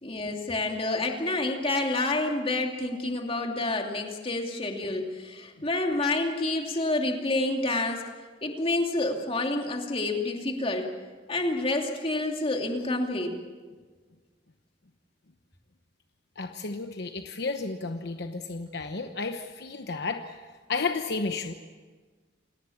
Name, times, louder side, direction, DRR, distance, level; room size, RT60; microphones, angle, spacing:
voice 1, 0.0-8.1 8.4-10.9 11.3-13.3, left 2 dB, 30° left, 2 dB, 2.7 m, -28 dB
voice 2, 16.4-20.4 20.7-21.5, left 4 dB, 60° left, 6 dB, 1.0 m, -32 dB
28.0 x 18.5 x 7.2 m, 1.5 s
head